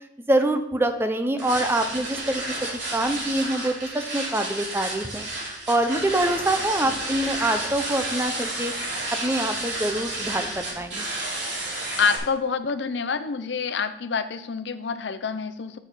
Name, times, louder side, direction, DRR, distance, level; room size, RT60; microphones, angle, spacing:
voice 1, 0.3-2.4 2.9-5.2 5.7-8.7 9.2-11.0, right 1 dB, 15° right, 7 dB, 0.6 m, -25 dB
sound 1, 1.4-12.2, right 2 dB, 75° right, 3.3 m, -31 dB
voice 2, 12.0-15.8, left 5 dB, 70° left, 11 dB, 0.6 m, -27 dB
6.3 x 6.3 x 5.2 m, 0.84 s
head